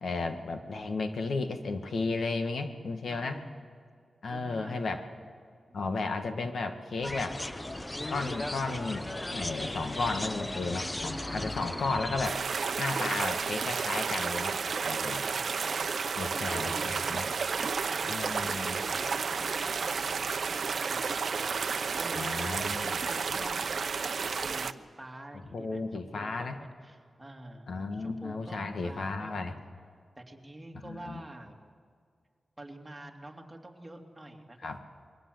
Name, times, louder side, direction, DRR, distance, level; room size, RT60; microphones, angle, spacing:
voice 1, 0.0-3.4 4.2-5.0 5.7-7.4 8.1-9.0 9.3-12.4 12.8-14.6 14.8-15.2 16.2-17.3 18.1-18.8 22.1-23.0 25.5-26.6 27.7-29.5 30.8-31.2 34.6-34.8, left 3 dB, 75° left, 6 dB, 1.9 m, -34 dB
voice 2, 3.1-3.7 4.3-5.0 5.7-5.9 15.1-15.8 16.3-17.1 17.6-18.0 18.3-22.5 22.8-27.7 27.9-29.4 30.2-31.6 32.6-34.7, right 1 dB, 15° right, 1 dB, 2.9 m, -47 dB
sound 1, 7.0-12.3, left 1 dB, 15° left, 0.9 m, -36 dB
sound 2, 12.2-24.7, right 5 dB, 65° right, 0.8 m, -31 dB
27.5 x 22.5 x 8.0 m, 2.1 s
wide cardioid pair, 95°, 0 cm